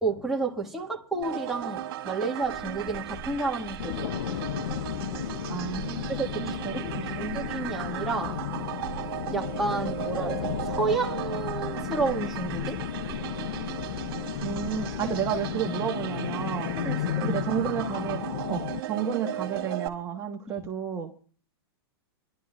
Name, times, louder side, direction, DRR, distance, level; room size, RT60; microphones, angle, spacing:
voice 1, 0.0-4.1 6.1-8.4 9.3-12.8 15.0-15.1 16.8-17.4 20.6-20.7, right 3 dB, ahead, 1.8 m, -31 dB
sound 1, 1.2-19.9, right 12 dB, 60° right, 2.0 m, -37 dB
sound 2, 2.4-15.5, equal, 20° left, 1.6 m, -43 dB
sound 3, 3.8-18.8, left 12 dB, 60° left, 0.6 m, -34 dB
voice 2, 5.5-7.5 14.4-16.8 17.2-21.2, right 8 dB, 20° right, 1.4 m, -32 dB
24.0 x 12.0 x 2.5 m
hypercardioid pair, 140°, 13 cm